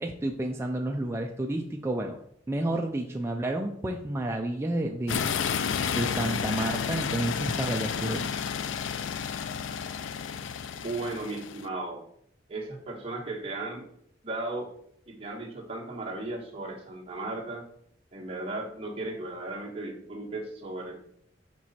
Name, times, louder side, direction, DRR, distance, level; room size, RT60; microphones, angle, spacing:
voice 1, 0.0-2.2 2.5-5.3 5.8-8.3, right 1 dB, 15° right, 2 dB, 0.4 m, -30 dB
sound 1, 5.1-11.7, left 7 dB, 80° left, 0.4 m, -31 dB
voice 2, 10.7-12.0 12.5-13.8 14.2-14.7 15.1-17.6 18.1-20.9, right 2 dB, 30° right, -2 dB, 1.3 m, -36 dB
5.0 x 4.6 x 4.2 m, 0.69 s
head